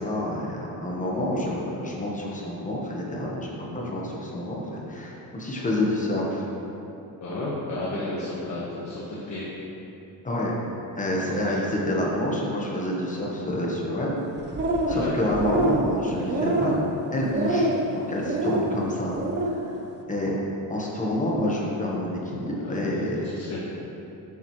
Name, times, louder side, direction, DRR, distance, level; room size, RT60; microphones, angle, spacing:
voice 1, 0.0-6.4 10.2-10.5 11.0-14.2 14.9-16.8 17.1-19.1 19.4-19.7 20.1-20.4 20.7-23.3, left 1 dB, 20° left, -3 dB, 1.2 m, -28 dB
voice 2, 7.2-9.4 14.9-15.2 22.6-23.0 23.2-23.6, left 2 dB, 45° left, -7 dB, 1.5 m, -32 dB
sound 1, 14.4-15.0 15.3-15.9 16.3-16.8 17.3-17.8 18.2-18.7 19.1-19.6, right 2 dB, 30° right, 0.7 m, -25 dB
11.5 x 7.4 x 3.2 m, 3.0 s
cardioid pair, 155°, 38 cm